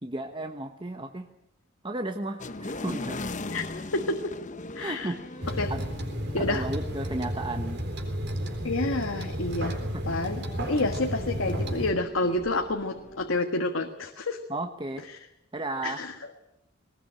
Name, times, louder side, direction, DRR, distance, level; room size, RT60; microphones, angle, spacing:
voice 1, 0.0-1.3 1.8-3.2 4.8-5.9 6.4-7.8 9.9-10.2 14.5-15.0 15.5-16.0, right 2 dB, 25° right, 6 dB, 1.1 m, -34 dB
sound 1, 2.4-13.4, left 2 dB, 40° left, 1.0 m, -41 dB
voice 2, 3.9-4.3 4.7-5.1 5.6-5.7 6.3-6.6 8.6-9.8 10.0-14.4 15.8-16.1, left 2 dB, 85° left, 5 dB, 1.6 m, -29 dB
sound 2, 5.4-11.9, equal, 60° right, 3.9 m, -32 dB
20.0 x 19.5 x 8.9 m, 0.87 s
head